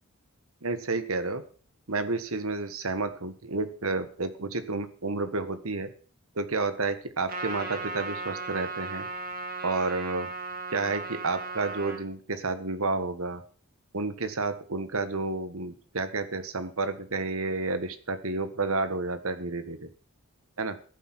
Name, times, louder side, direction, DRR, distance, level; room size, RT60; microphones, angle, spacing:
voice 1, 0.6-1.4 1.9-5.9 6.3-9.1 9.6-10.3 10.7-13.4 13.9-19.9 20.6-20.8, right 3 dB, 70° right, 11 dB, 1.4 m, -30 dB
Trumpet, 7.3-12.0, right 3 dB, 40° right, 2.8 m, -36 dB
14.5 x 7.8 x 6.1 m, 0.42 s
head